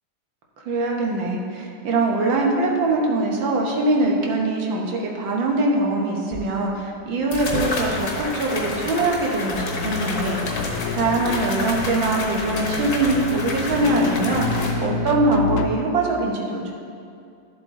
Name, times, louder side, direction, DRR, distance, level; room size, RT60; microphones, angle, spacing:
voice 1, 0.7-16.7, right 2 dB, 70° right, 0 dB, 1.8 m, -23 dB
sound 1, 6.3-6.4 7.3-14.7, left 2 dB, 50° left, 1.5 m, -29 dB
sound 2, 9.6-15.7, left 4 dB, 80° left, 1.4 m, -29 dB
11.5 x 7.6 x 3.7 m, 2.5 s
omnidirectional pair, 2.2 m